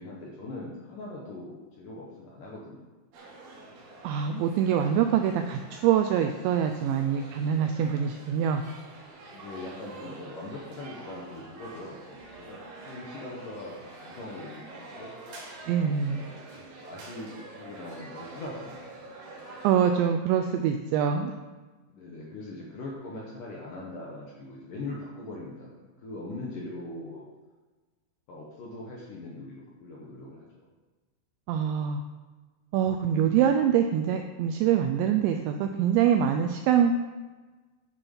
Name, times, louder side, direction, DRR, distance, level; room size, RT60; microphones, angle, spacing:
voice 1, 0.0-2.8 9.3-15.1 16.0-16.2 16.8-18.9 21.9-27.3 28.3-30.5, left 2 dB, 65° left, -4 dB, 2.2 m, -41 dB
sound 1, 3.1-19.7, right 2 dB, 60° right, 3.7 m, -46 dB
voice 2, 4.0-8.6 15.7-16.3 19.6-21.3 31.5-32.0 32.7-36.9, right 8 dB, 85° right, 6 dB, 2.6 m, -24 dB
11.0 x 6.8 x 5.5 m, 1.3 s
omnidirectional pair, 5.7 m